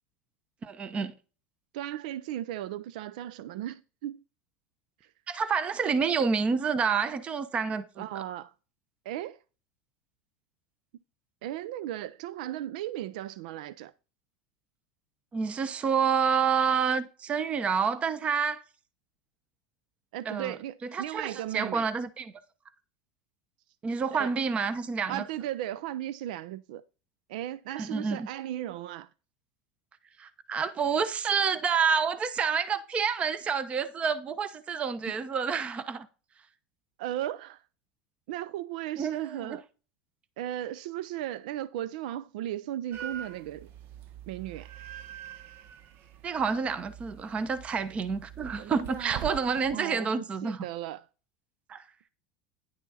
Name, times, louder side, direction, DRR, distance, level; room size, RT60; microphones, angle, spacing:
voice 1, 0.6-1.1 5.3-8.0 15.3-18.6 20.2-20.5 20.8-22.3 23.8-25.2 27.8-28.3 30.2-36.1 39.0-39.6 46.2-50.6 51.7-51.8, right 6 dB, 30° right, 0.9 m, -28 dB
voice 2, 1.7-4.2 8.0-8.5 9.0-9.4 11.4-13.9 20.1-21.9 24.1-24.3 25.1-26.8 27.3-29.1 37.0-37.6 38.3-39.6 40.4-43.7 44.3-44.7 49.7-50.1 50.4-51.0, right 13 dB, 75° right, 0.5 m, -36 dB
sound 1, 42.9-49.7, right 10 dB, 55° right, 0.9 m, -43 dB
10.5 x 6.1 x 4.1 m
supercardioid pair, 115°, 4 cm